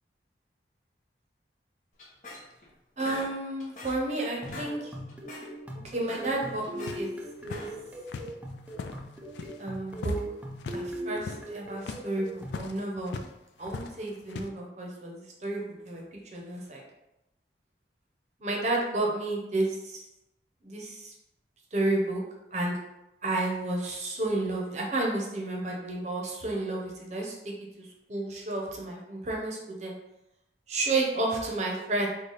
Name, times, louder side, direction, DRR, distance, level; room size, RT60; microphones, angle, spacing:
sound 1, 2.0-2.7 3.0-4.1 4.4-4.8 5.1-5.5 5.9-7.0 7.4-7.9, left 2 dB, 45° left, 0.7 m, -43 dB
voice 1, 3.0-4.9 5.8-7.1 7.4-7.7 9.6-10.2 10.7-13.2 13.6-16.8 18.4-20.0 20.6-21.1 21.7-22.2 22.5-22.8 23.2-29.9 30.7-32.1, right 2 dB, 40° right, -1 dB, 0.7 m, -31 dB
sound 2, 4.2-12.7, right 1 dB, 10° right, 0.4 m, -40 dB
sound 3, 6.3-9.6 9.9-10.3 10.5-10.9 11.2-13.4 13.6-14.5, left 4 dB, 75° left, 0.3 m, -40 dB
3.3 x 2.2 x 3.9 m, 0.91 s
head